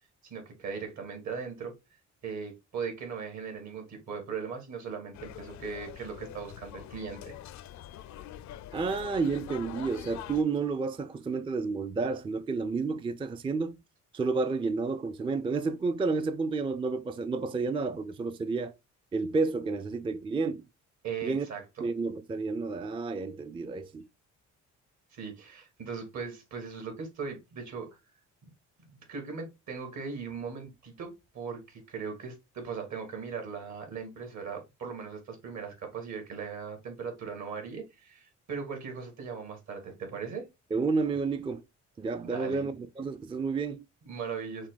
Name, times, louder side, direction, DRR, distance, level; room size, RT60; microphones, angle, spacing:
voice 1, 0.2-1.7 2.2-7.3 21.0-21.8 25.1-27.9 28.4-28.5 28.8-40.5 42.3-42.6 44.0-44.7, right 5 dB, 65° right, 2.2 m, -39 dB
sound 1, 5.1-10.4, left 12 dB, 65° left, 0.5 m, -44 dB
voice 2, 8.7-13.8 14.1-18.8 19.1-20.6 21.2-21.5 21.8-24.1 40.7-41.6 42.0-43.8, right 4 dB, 15° right, 0.4 m, -30 dB
6.1 x 2.3 x 3.9 m
cardioid pair, 90°, 30 cm